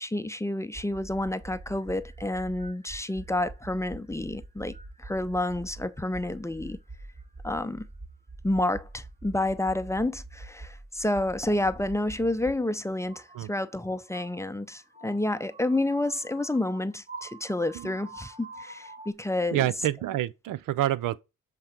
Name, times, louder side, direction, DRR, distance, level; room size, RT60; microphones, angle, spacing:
voice 1, 0.0-6.8 7.4-7.9 8.4-19.7, left 1 dB, 10° left, 0.5 m, -29 dB
sound 1, 0.7-12.6 13.0-19.1, right 2 dB, 25° right, 1.0 m, -45 dB
voice 2, 19.5-21.2, right 13 dB, 75° right, 0.5 m, -28 dB
7.8 x 3.7 x 4.4 m
supercardioid pair, 60°, 33 cm